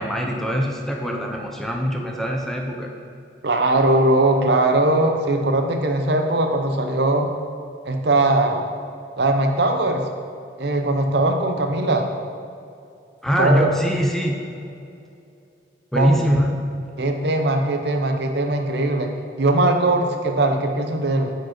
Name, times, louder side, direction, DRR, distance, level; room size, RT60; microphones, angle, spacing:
voice 1, 0.0-2.9 13.2-14.4 15.9-16.5, equal, ahead, 1 dB, 0.6 m, -22 dB
voice 2, 3.4-7.3 7.8-8.7 9.2-10.0 10.6-12.1 13.4-13.7 15.9-16.1 17.0-19.1 19.4-21.3, right 2 dB, 65° right, 5 dB, 0.8 m, -20 dB
8.2 x 5.1 x 6.0 m, 2.5 s
head